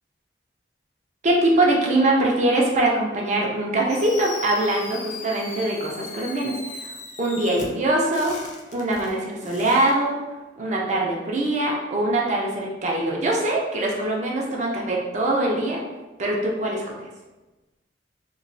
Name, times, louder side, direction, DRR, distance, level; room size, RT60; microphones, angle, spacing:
voice 1, 1.2-6.9 7.2-8.4 8.7-10.2 10.6-15.8 16.2-17.0, right 1 dB, 40° right, -2 dB, 0.4 m, -23 dB
Fireworks, 3.9-9.9, left 4 dB, 40° left, 0.4 m, -38 dB
3.0 x 2.1 x 2.5 m, 1.1 s
head